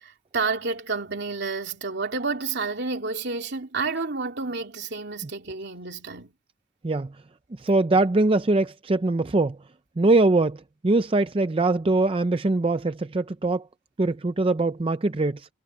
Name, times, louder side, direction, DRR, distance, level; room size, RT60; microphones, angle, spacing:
voice 1, 0.0-6.3, right 4 dB, 60° right, 3.2 m, -30 dB
voice 2, 6.8-7.2 7.6-9.6 10.0-13.6 14.0-15.5, right 2 dB, 30° right, 0.5 m, -22 dB
head